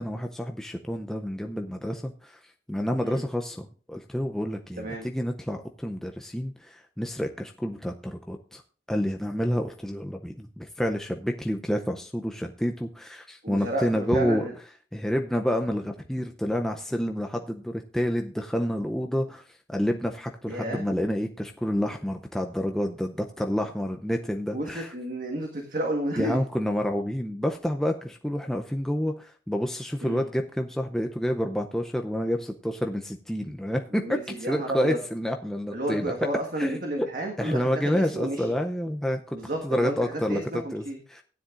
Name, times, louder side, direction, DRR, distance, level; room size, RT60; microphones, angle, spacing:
voice 1, 0.0-2.4 2.7-8.6 8.9-14.4 14.9-24.9 26.2-34.2 34.5-36.1 36.6-37.1 37.4-39.4 39.6-40.8 41.1-41.2, equal, 5° left, 3 dB, 0.5 m, -29 dB
voice 2, 4.8-5.1 13.4-14.5 20.5-20.8 24.5-26.4 30.0-30.2 33.9-35.0 35.7-38.4 39.3-40.0 40.3-41.0, right 1 dB, 45° right, 2 dB, 1.5 m, -31 dB
15.5 x 10.0 x 2.5 m, 0.40 s
head